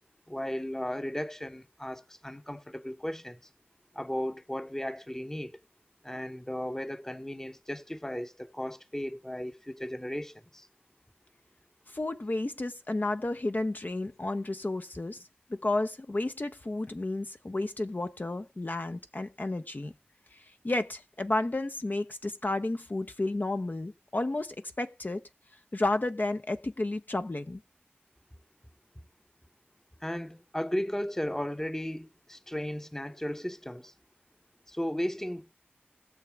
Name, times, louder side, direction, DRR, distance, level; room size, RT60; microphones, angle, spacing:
voice 1, 0.3-3.4 3.9-5.6 6.0-10.7 30.0-33.9 34.7-35.5, equal, 10° left, 0.8 m, -35 dB
voice 2, 11.9-15.2 15.5-19.9 20.3-25.2 25.7-27.6, left 2 dB, 50° left, 0.6 m, -32 dB
20.0 x 6.9 x 3.4 m
wide cardioid pair, 50°, 4 cm